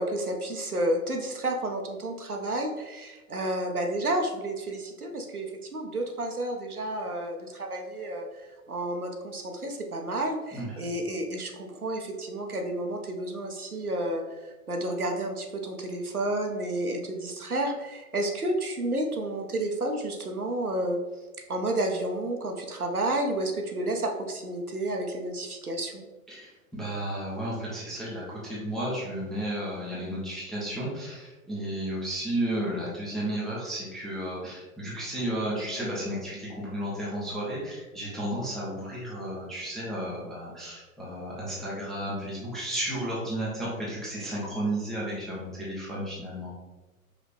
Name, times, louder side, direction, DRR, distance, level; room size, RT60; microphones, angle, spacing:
voice 1, 0.0-14.2 14.7-21.0 21.5-26.0, right 1 dB, 90° right, 2 dB, 0.9 m, -31 dB
voice 2, 26.3-46.5, right 1 dB, ahead, -8 dB, 0.5 m, -33 dB
5.0 x 3.3 x 3.3 m, 1.2 s
figure-of-eight pair, 105°, 43 cm